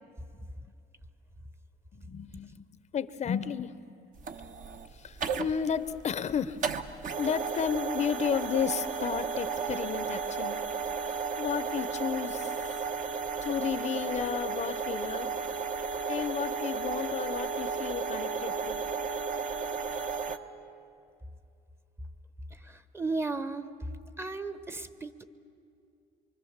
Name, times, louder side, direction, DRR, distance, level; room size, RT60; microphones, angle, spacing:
voice 1, 1.9-2.6 2.9-3.7 4.9-6.6 7.2-10.6 11.4-12.5 13.4-15.3 16.1-18.8, left 7 dB, 45° left, 13 dB, 0.7 m, -32 dB
sound 1, 4.2-20.4, right 5 dB, 50° right, 1.1 m, -34 dB
voice 2, 22.6-23.7 24.2-25.2, right 3 dB, 15° right, 12 dB, 0.9 m, -35 dB
24.5 x 24.0 x 7.3 m, 2.5 s
cardioid pair, 110°, 17 cm